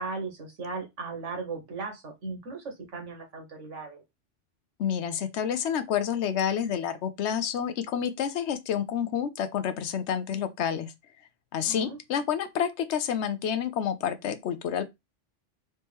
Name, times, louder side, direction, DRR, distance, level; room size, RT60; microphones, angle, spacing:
voice 1, 0.0-4.0 11.6-12.0, right 3 dB, 80° right, 1.7 m, -37 dB
voice 2, 4.8-10.9 11.5-14.9, left 8 dB, 70° left, 0.9 m, -29 dB
4.3 x 3.0 x 3.5 m
omnidirectional pair, 1.2 m